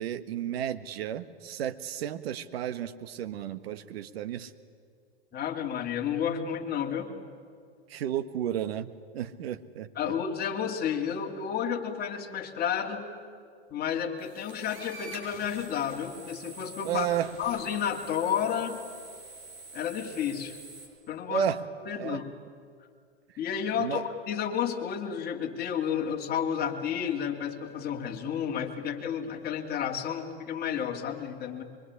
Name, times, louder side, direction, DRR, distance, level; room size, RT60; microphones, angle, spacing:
voice 1, 0.0-4.5 7.9-8.9 9.1-9.9 16.8-17.3 21.3-21.6 21.9-22.2 23.8-24.0, right 9 dB, 65° right, 11 dB, 1.6 m, -32 dB
voice 2, 5.3-7.1 9.9-13.1 13.7-17.1 17.4-18.8 19.7-20.6 21.1-21.5 21.8-22.3 23.4-31.6, left 8 dB, 30° left, 2 dB, 3.1 m, -31 dB
sound 1, 14.2-20.9, right 3 dB, 40° right, 7.1 m, -47 dB
24.0 x 23.5 x 10.0 m, 2.1 s
hypercardioid pair, 115°, 33 cm